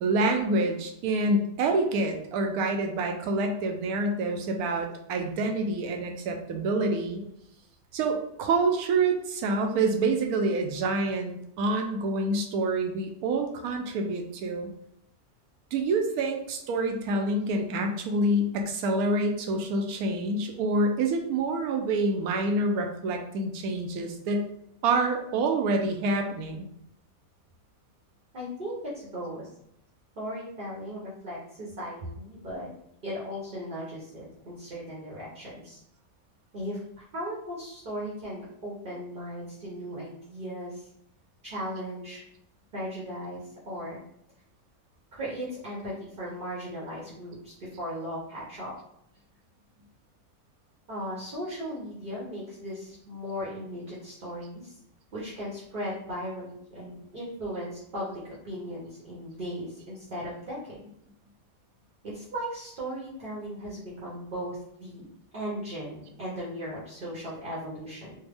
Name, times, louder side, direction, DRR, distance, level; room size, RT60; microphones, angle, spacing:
voice 1, 0.0-7.2 7.9-14.7 15.7-24.5 24.8-26.7, right 2 dB, 85° right, 3 dB, 1.1 m, -27 dB
voice 2, 28.3-29.5 30.2-32.7 33.0-35.8 36.5-40.9 41.4-42.2 42.7-44.0 45.1-48.7 50.9-54.8 55.1-60.8 62.0-65.0 65.3-68.1, equal, 45° right, -5 dB, 0.8 m, -37 dB
3.4 x 2.1 x 3.3 m, 0.76 s
omnidirectional pair, 1.5 m